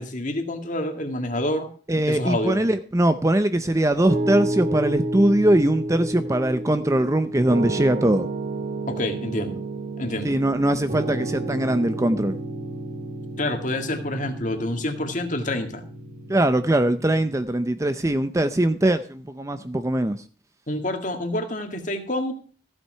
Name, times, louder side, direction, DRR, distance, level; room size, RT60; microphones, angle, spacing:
voice 1, 0.0-1.7 2.1-2.6 8.9-9.6 10.0-10.4 13.4-15.8 20.7-22.3, left 1 dB, 40° left, 5 dB, 1.9 m, -27 dB
voice 2, 1.9-8.3 10.2-12.4 16.3-20.2, right 1 dB, 15° right, 11 dB, 0.5 m, -21 dB
Piano, 4.1-17.4, right 2 dB, 45° right, 3.1 m, -31 dB
15.0 x 7.8 x 5.6 m, 0.40 s
head